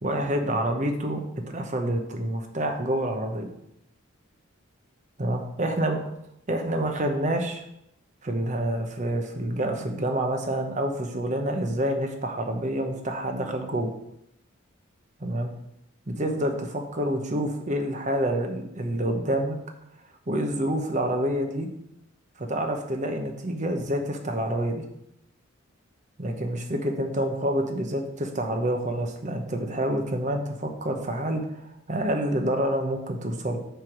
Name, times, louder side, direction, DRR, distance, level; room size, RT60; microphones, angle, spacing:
voice 1, 0.0-3.5 5.2-6.0 6.5-7.6 8.2-13.9 15.2-15.5 16.1-19.6 20.3-21.7 22.4-24.8 26.2-33.6, right 1 dB, 35° right, 4 dB, 0.9 m, -27 dB
7.6 x 3.5 x 6.1 m, 0.81 s
head